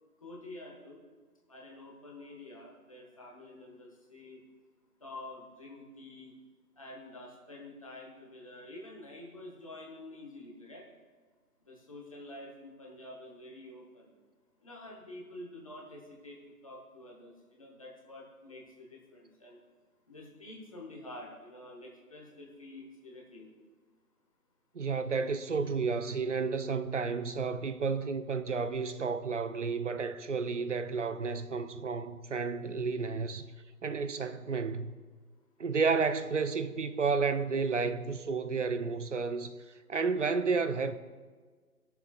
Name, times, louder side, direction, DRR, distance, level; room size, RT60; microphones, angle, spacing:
voice 1, 0.2-1.1 1.5-4.4 5.0-6.3 6.8-10.9 11.6-14.1 14.6-16.4 16.6-19.6 20.1-23.5 36.2-36.3, left 1 dB, 20° left, 1.0 m, -48 dB
voice 2, 24.7-33.4 33.8-34.9 35.6-39.5 39.9-41.0, right 5 dB, 50° right, 0.5 m, -31 dB
20.0 x 7.0 x 2.3 m
figure-of-eight pair, 155°, 46 cm